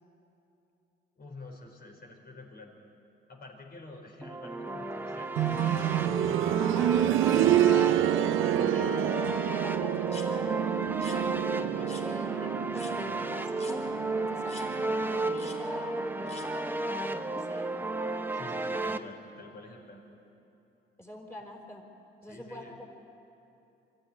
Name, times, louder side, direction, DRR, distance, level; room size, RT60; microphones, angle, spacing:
voice 1, 1.2-2.7 3.3-7.6 8.4-8.8 18.3-20.0 22.3-22.7, left 2 dB, 50° left, 1 dB, 4.9 m, -48 dB
sound 1, 4.2-19.0, right 2 dB, 10° right, 0.9 m, -33 dB
sound 2, 5.4-16.1 17.5-17.6, right 13 dB, 85° right, 0.6 m, -28 dB
voice 2, 6.6-7.2 8.2-17.9 21.0-21.8 22.2-22.9, left 1 dB, 15° left, 1 dB, 4.5 m, -45 dB
sound 3, 10.1-10.3 10.9-11.2 11.9-12.0 12.7-12.9 13.6-13.8 14.5-14.7 15.3-15.6 16.3-16.5, left 2 dB, 35° left, 4.3 m, -46 dB
24.5 x 14.0 x 9.9 m, 2.9 s
cardioid pair, 90°, 20 cm